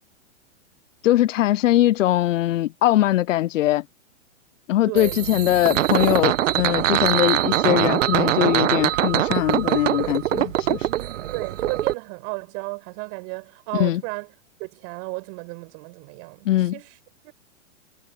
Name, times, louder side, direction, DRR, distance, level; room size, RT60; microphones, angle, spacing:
voice 1, 1.0-3.8 4.7-10.9 13.7-14.0 16.5-16.7, left 14 dB, 80° left, 0.6 m, -21 dB
voice 2, 4.9-5.2 11.3-14.3 14.6-17.0 17.2-17.3, right 40 dB or more, 40° right, 7.3 m, -33 dB
sound 1, 5.0-11.9, right 12 dB, 75° right, 1.1 m, -22 dB
hypercardioid pair, 135°, 38 cm